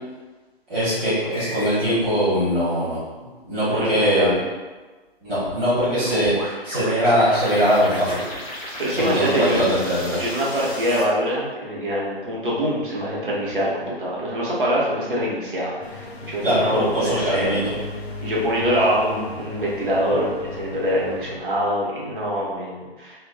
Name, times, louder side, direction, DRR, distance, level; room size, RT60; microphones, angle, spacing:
voice 1, 0.7-3.0 3.5-4.3 5.2-8.2 9.0-10.2 16.4-17.7, equal, 10° right, -15 dB, 0.5 m, -21 dB
sound 1, 1.3-1.8 5.5-11.0, left 1 dB, 40° left, 0.6 m, -35 dB
voice 2, 3.7-4.4 8.8-9.6 10.2-17.5 18.2-23.3, equal, 55° right, -5 dB, 0.8 m, -24 dB
sound 2, 15.8-21.4, left 2 dB, 90° left, 0.5 m, -36 dB
2.4 x 2.2 x 2.4 m, 1.3 s
figure-of-eight pair, 130°, 31 cm